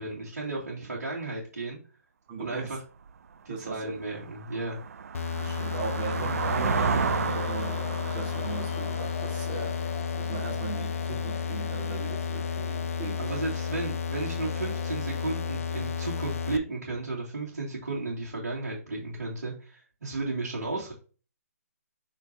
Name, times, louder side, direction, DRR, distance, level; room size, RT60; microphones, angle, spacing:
voice 1, 0.0-1.8 2.4-2.8 3.4-4.8 13.2-20.9, right 3 dB, 75° right, 2.8 m, -34 dB
voice 2, 2.3-2.7 3.5-4.0 5.4-9.8 10.2-13.4, right 5 dB, 30° right, 1.8 m, -38 dB
sound 1, 3.1-3.2 3.7-10.2, right 6 dB, 60° right, 0.4 m, -32 dB
sound 2, 5.1-16.6, left 6 dB, 55° left, 0.6 m, -32 dB
sound 3, 6.4-16.6, left 6 dB, 40° left, 1.0 m, -42 dB
7.7 x 4.5 x 2.9 m
figure-of-eight pair, 140°, 9 cm